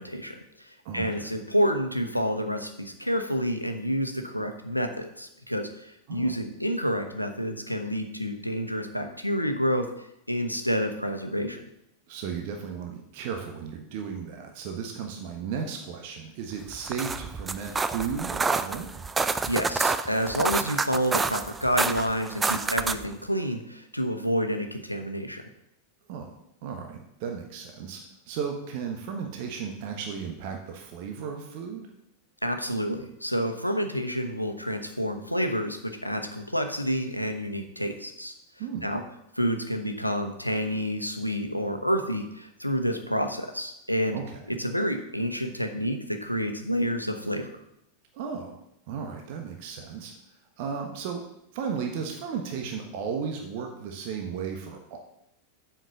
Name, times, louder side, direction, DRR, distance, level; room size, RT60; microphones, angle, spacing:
voice 1, 0.0-11.6 19.5-25.4 32.4-38.3 38.8-39.0 39.4-44.2 44.5-47.5, equal, 90° left, 5 dB, 0.9 m, -29 dB
voice 2, 0.8-1.4 6.1-6.4 12.1-18.9 26.1-26.4 26.6-28.0 28.3-31.9 38.6-38.9 44.1-44.6 48.1-48.5 48.9-50.1 50.6-51.2 51.5-55.0, right 6 dB, 50° right, 3 dB, 1.2 m, -35 dB
sound 1, 16.7-23.1, right 4 dB, 15° right, 0.5 m, -28 dB
7.7 x 5.8 x 6.9 m, 0.81 s
figure-of-eight pair, 90°, 0 cm